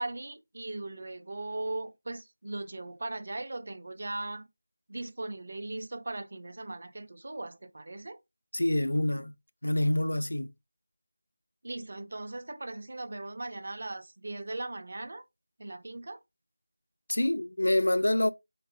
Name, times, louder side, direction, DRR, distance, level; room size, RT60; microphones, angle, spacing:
voice 1, 0.0-4.5 4.9-8.2 11.6-15.2 15.6-16.2, right 2 dB, 50° right, 0.5 m, -38 dB
voice 2, 8.5-9.3 9.6-10.5 17.1-18.3, left 1 dB, 85° left, 0.3 m, -26 dB
3.0 x 2.9 x 2.4 m
figure-of-eight pair, 175°, 0 cm